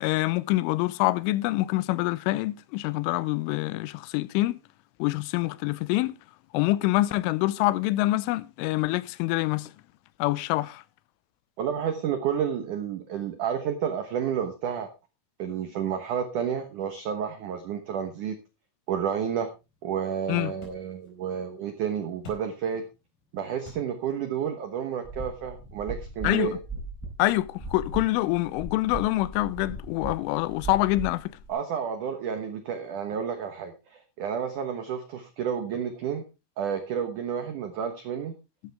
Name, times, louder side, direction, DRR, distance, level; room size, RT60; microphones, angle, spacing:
voice 1, 0.0-4.6 5.0-6.2 6.5-9.7 10.2-10.8 20.3-20.5 26.2-26.6 27.2-31.3, left 18 dB, 90° left, 3.2 m, -26 dB
voice 2, 11.6-14.9 15.4-18.4 18.9-19.5 19.8-22.9 23.3-26.5 31.5-36.2 36.6-38.3, right 8 dB, 90° right, 1.7 m, -30 dB
sound 1, 18.9-26.0, left 3 dB, 50° left, 6.0 m, -54 dB
sound 2, 25.0-31.5, right 3 dB, 5° right, 5.7 m, -39 dB
13.5 x 11.5 x 3.4 m
omnidirectional pair, 5.5 m